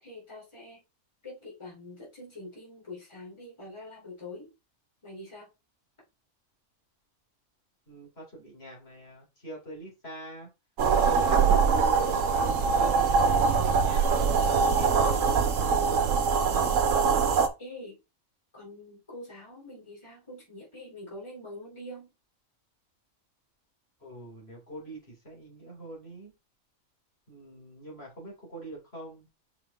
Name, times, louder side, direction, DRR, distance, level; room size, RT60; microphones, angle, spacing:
voice 1, 0.0-0.8 1.2-4.5 5.0-5.5 16.3-16.7 17.6-18.0 18.5-22.1, left 1 dB, 20° left, 3.2 m, -44 dB
voice 2, 7.9-10.5 11.0-15.3 24.0-26.3 27.3-29.3, right 1 dB, 45° left, 3.7 m, -43 dB
sound 1, 10.8-17.5, right 5 dB, 70° right, 1.2 m, -23 dB
5.8 x 5.1 x 3.5 m
omnidirectional pair, 1.4 m